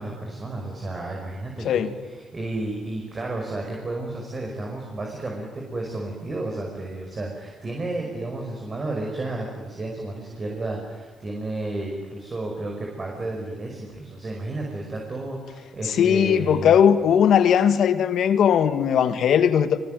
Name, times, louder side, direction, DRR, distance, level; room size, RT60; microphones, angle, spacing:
voice 1, 0.0-16.8, right 2 dB, 35° right, 5.7 m, -32 dB
voice 2, 16.0-19.8, left 8 dB, 70° left, 1.7 m, -18 dB
24.0 x 24.0 x 9.4 m
cardioid pair, 90°, 0 cm